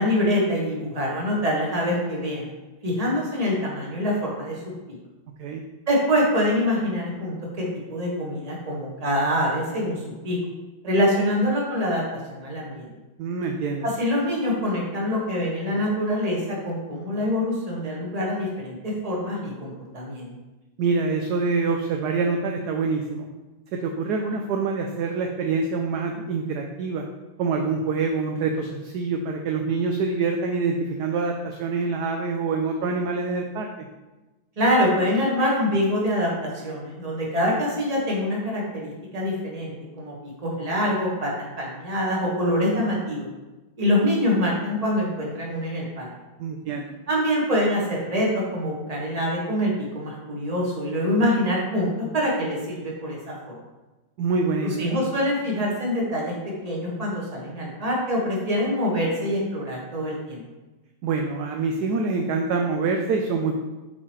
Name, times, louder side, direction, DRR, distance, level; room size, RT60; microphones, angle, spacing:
voice 1, 0.0-2.5 2.8-4.6 4.9-5.0 5.9-10.4 10.8-12.0 12.3-12.9 14.0-20.3 34.6-36.3 36.6-40.1 40.4-41.3 41.6-43.3 43.8-46.1 47.1-53.6 54.8-56.3 56.6-60.4, equal, 20° right, -4 dB, 1.3 m, -25 dB
voice 2, 13.2-13.8 20.8-23.3 23.7-27.0 27.4-33.7 46.4-46.9 54.2-54.9 61.0-63.5, right 4 dB, 75° right, 3 dB, 0.9 m, -25 dB
7.8 x 4.1 x 3.1 m, 1.1 s
omnidirectional pair, 2.1 m